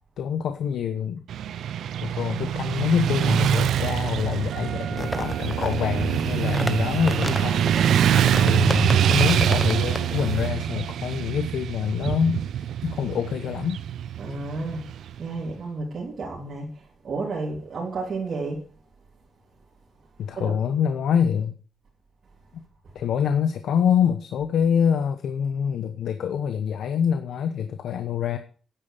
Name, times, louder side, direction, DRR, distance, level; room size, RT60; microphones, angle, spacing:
voice 1, 0.2-1.2 2.0-13.8 20.2-21.5 22.9-28.4, left 8 dB, 90° left, 1.0 m, -26 dB
Motorcycle / Traffic noise roadway noise, 1.3-15.4, right 9 dB, 90° right, 0.6 m, -24 dB
Wind instrument woodwind instrument, 4.5-9.8, right 8 dB, 60° right, 1.3 m, -43 dB
sound 1, 5.0-10.5, left 1 dB, 5° left, 0.9 m, -34 dB
voice 2, 8.4-9.2 14.2-18.7 20.3-20.5 22.8-23.0, right 3 dB, 45° right, 3.4 m, -32 dB
10.0 x 9.0 x 6.8 m
wide cardioid pair, 175°, 0 cm